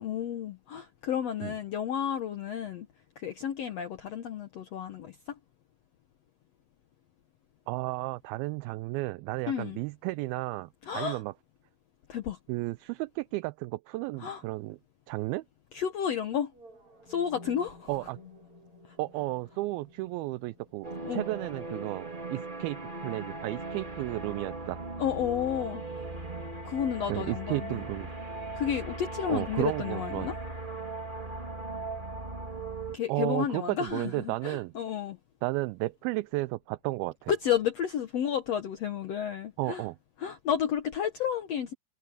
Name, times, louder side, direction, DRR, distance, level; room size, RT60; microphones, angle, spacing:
voice 1, 0.0-2.9 3.2-5.4 9.5-9.8 10.8-11.2 12.1-12.4 14.2-14.4 15.7-16.5 17.1-17.9 21.0-21.2 25.0-26.1 26.6-27.8 28.5-30.4 32.9-35.2 37.3-39.8 40.2-41.7, left 9 dB, 90° left, 1.4 m, -31 dB
voice 2, 7.7-11.3 12.5-14.8 15.1-15.4 17.9-18.2 19.0-24.8 27.1-28.1 29.3-30.3 33.1-34.7 35.4-37.3 39.6-40.0, right 21 dB, 80° right, 2.3 m, -33 dB
sound 1, 16.5-24.5, left 2 dB, 35° right, 5.7 m, -56 dB
sound 2, 20.8-33.0, right 2 dB, 15° right, 2.0 m, -38 dB
omnidirectional pair, 4.6 m